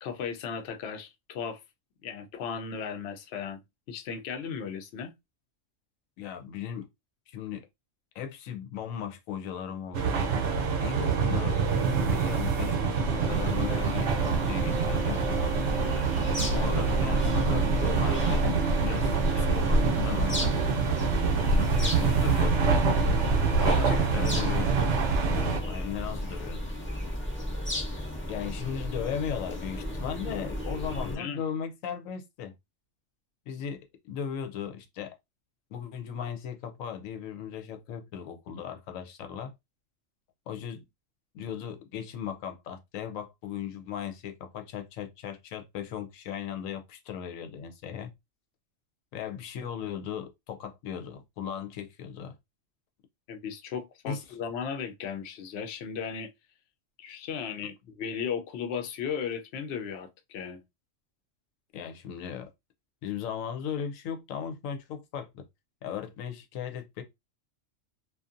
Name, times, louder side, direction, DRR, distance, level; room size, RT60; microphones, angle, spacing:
voice 1, 0.0-1.6 2.0-3.6 3.9-5.1 15.8-15.9 21.4-21.7 23.6-24.4 31.0-31.4 53.3-56.3 57.0-60.6, left 7 dB, 65° left, 0.8 m, -36 dB
voice 2, 6.2-6.9 7.3-7.7 8.1-10.3 10.8-11.6 12.0-15.5 16.5-18.6 18.8-20.6 21.8-22.9 23.6-24.7 25.2-26.6 28.3-32.5 33.5-35.2 35.7-39.5 40.5-40.8 41.3-48.1 49.1-52.3 54.0-54.2 61.7-62.5 63.0-65.5 65.8-67.0, left 8 dB, 90° left, 1.0 m, -37 dB
sound 1, 9.9-25.6, right 5 dB, 65° right, 0.9 m, -26 dB
sound 2, 13.3-31.2, equal, 15° left, 0.4 m, -33 dB
2.6 x 2.4 x 2.4 m
omnidirectional pair, 1.3 m